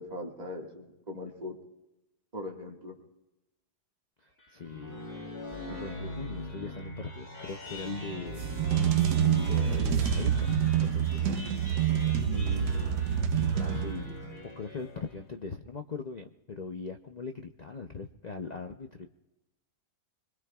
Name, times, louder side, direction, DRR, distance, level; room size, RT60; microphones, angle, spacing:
voice 1, 0.0-1.6 2.3-3.0 12.3-12.7, left 1 dB, 25° right, 0 dB, 1.9 m, -40 dB
sound 1, 4.4-15.2, left 1 dB, 35° left, 6.5 m, -42 dB
voice 2, 4.5-5.0 5.7-8.5 9.3-10.5 10.8-11.3 13.4-14.2 14.6-19.1, left 4 dB, 70° left, 5 dB, 0.4 m, -40 dB
sound 2, 8.3-14.2, right 8 dB, 85° right, 1.4 m, -27 dB
25.5 x 22.5 x 2.4 m, 1.0 s
omnidirectional pair, 1.7 m